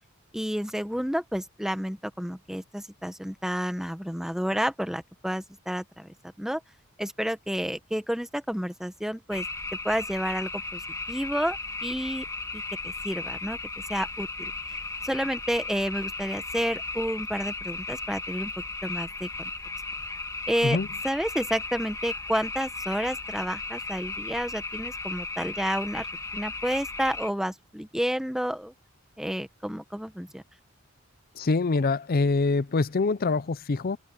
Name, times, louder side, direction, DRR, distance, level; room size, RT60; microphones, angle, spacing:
voice 1, 0.3-6.6 7.0-9.5 9.8-10.8 11.1-12.2 12.5-13.6 13.9-14.5 15.0-18.5 18.8-19.5 20.5-20.8 21.0-26.1 26.3-28.7 29.2-30.4, equal, ahead, 1.2 m, -30 dB
sound 1, 9.3-27.3, left 3 dB, 15° left, 2.6 m, -35 dB
voice 2, 31.4-34.0, left 3 dB, 45° left, 0.5 m, -25 dB
open air
head